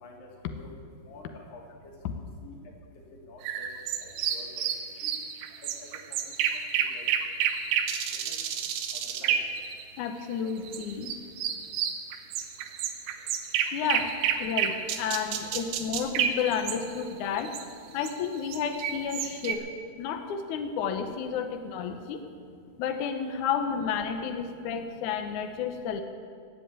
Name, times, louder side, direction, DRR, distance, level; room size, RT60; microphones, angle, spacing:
voice 1, 1.1-1.6 2.4-2.6 3.3-3.7 4.0-4.6 5.0-5.1 5.8-5.9 6.9-7.0 8.3-8.4 9.2-9.4, left 2 dB, 60° left, -1 dB, 3.8 m, -48 dB
sound 1, 3.4-10.1 10.7-17.1 17.4-17.7 18.0-19.5, right 8 dB, 85° right, 3.1 m, -30 dB
voice 2, 10.0-11.1 13.7-14.1 14.4-17.5 17.9-19.7 20.0-22.2 22.8-26.0, left 7 dB, 75° left, 6 dB, 1.8 m, -31 dB
18.0 x 8.1 x 8.7 m, 2.3 s
omnidirectional pair, 4.7 m